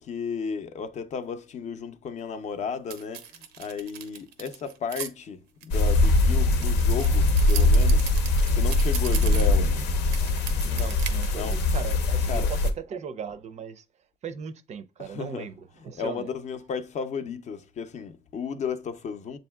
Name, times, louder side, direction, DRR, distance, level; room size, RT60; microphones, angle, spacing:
voice 1, 0.0-8.1 8.5-9.7 11.4-11.6 12.3-12.5 15.0-15.5 15.9-19.4, left 6 dB, 45° left, 0.5 m, -34 dB
sound 1, 2.9-5.1 5.6-9.8 10.1-11.3, right 9 dB, 85° right, 0.6 m, -38 dB
sound 2, 5.7-12.7, left 2 dB, 85° left, 0.7 m, -22 dB
voice 2, 10.6-12.6 12.9-13.8 14.2-16.3, right 7 dB, 45° right, 0.5 m, -38 dB
6.9 x 2.7 x 2.2 m
cardioid pair, 110°, 17 cm